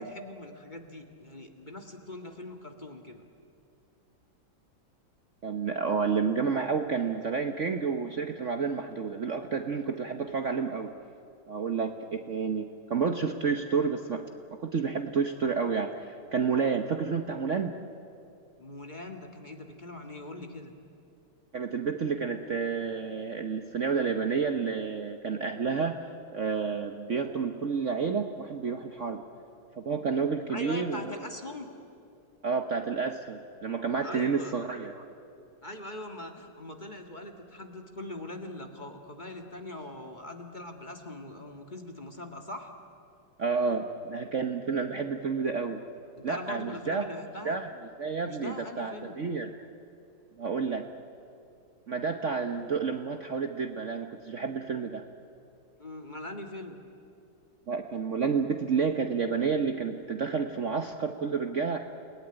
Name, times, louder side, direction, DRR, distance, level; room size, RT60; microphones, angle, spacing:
voice 1, 0.0-3.2 18.6-20.7 30.5-31.7 34.0-34.6 35.6-42.7 46.2-47.6 48.2-49.2 55.8-56.8, left 1 dB, 25° left, 4 dB, 1.9 m, -42 dB
voice 2, 5.4-10.9 11.5-14.2 14.6-17.7 21.5-26.1 26.3-29.2 29.7-31.1 32.4-34.9 43.4-45.8 46.2-47.1 47.4-47.7 48.0-49.5 50.4-50.9 51.9-55.0 57.7-61.8, right 5 dB, 45° right, 5 dB, 1.2 m, -30 dB
29.5 x 19.0 x 9.9 m, 2.5 s
omnidirectional pair, 2.0 m